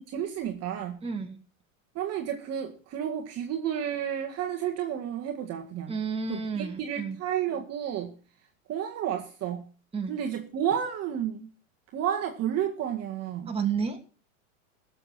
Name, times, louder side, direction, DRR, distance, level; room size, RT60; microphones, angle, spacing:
voice 1, 0.1-1.0 2.0-6.0 6.3-8.1 8.7-9.6 10.1-11.5 11.9-13.5, right 9 dB, 40° right, 2 dB, 1.9 m, -31 dB
voice 2, 1.0-1.4 5.9-7.2 9.9-10.2 13.5-14.0, right 5 dB, 15° right, 2 dB, 2.9 m, -31 dB
17.5 x 7.1 x 6.0 m, 0.38 s
supercardioid pair, 120°, 40 cm